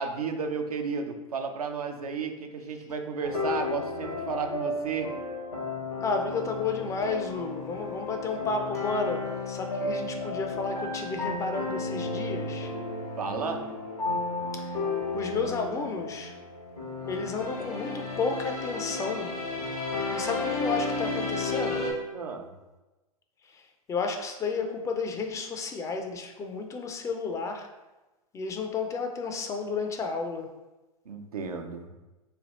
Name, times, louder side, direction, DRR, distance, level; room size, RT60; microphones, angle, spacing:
voice 1, 0.0-5.1 13.2-13.6 22.1-22.5 31.1-31.9, right 5 dB, 85° right, 5 dB, 0.5 m, -33 dB
sound 1, 3.2-21.9, left 3 dB, 90° left, 1.1 m, -33 dB
voice 2, 6.0-12.7 14.5-14.8 15.1-16.4 17.1-19.3 20.1-21.9 23.4-23.6 23.9-27.7 28.3-30.5, left 4 dB, 15° left, 4 dB, 0.3 m, -32 dB
3.3 x 2.3 x 4.0 m, 1.1 s
hypercardioid pair, 100°, 19 cm